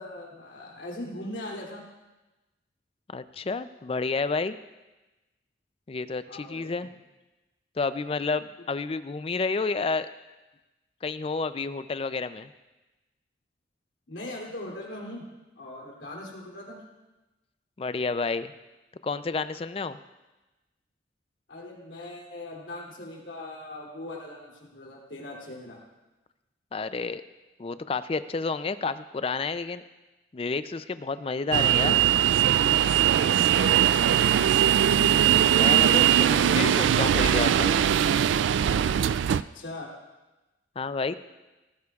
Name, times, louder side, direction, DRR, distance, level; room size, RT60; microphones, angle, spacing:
voice 1, 0.0-1.8 6.3-6.9 14.1-15.3 15.6-16.8 21.5-25.8 33.2-34.9 39.5-39.9, left 1 dB, 80° left, -2 dB, 2.9 m, -40 dB
voice 2, 3.1-4.6 5.9-6.9 7.8-10.1 11.0-12.5 17.8-18.5 19.0-20.0 26.7-27.2 27.6-29.8 30.3-32.0 35.5-37.7 40.8-41.1, left 4 dB, 30° left, 13 dB, 0.4 m, -30 dB
sound 1, 31.5-39.4, right 10 dB, 85° right, 0.3 m, -21 dB
17.0 x 13.5 x 2.4 m, 1.1 s
head